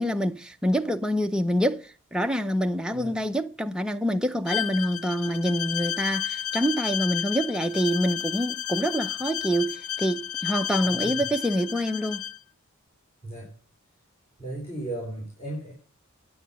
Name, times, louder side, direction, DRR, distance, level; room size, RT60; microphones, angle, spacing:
voice 1, 0.0-12.2, equal, 5° right, 0.6 m, -26 dB
voice 2, 2.9-3.2 10.8-11.3 13.2-13.5 14.4-15.7, right 1 dB, 30° left, 4.4 m, -36 dB
Bowed string instrument, 4.5-12.4, left 11 dB, 80° left, 0.5 m, -32 dB
9.5 x 9.3 x 5.5 m
head